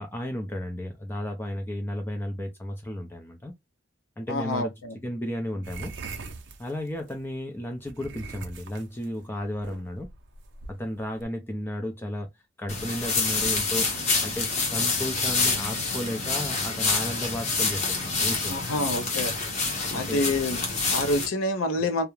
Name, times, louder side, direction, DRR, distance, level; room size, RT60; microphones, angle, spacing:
voice 1, 0.0-3.5 4.2-4.7 5.0-5.9 6.6-10.1 10.7-12.3 12.6-13.9 14.2-18.7 19.9-20.2, left 1 dB, 10° left, 0.4 m, -33 dB
voice 2, 4.3-4.9 18.5-19.3 19.9-22.0, left 2 dB, 85° left, 0.5 m, -27 dB
sound 1, 5.6-7.2 7.8-11.2, right 4 dB, 60° right, 0.5 m, -41 dB
sound 2, 12.7-21.3, left 4 dB, 35° left, 0.7 m, -27 dB
2.3 x 2.0 x 2.9 m
head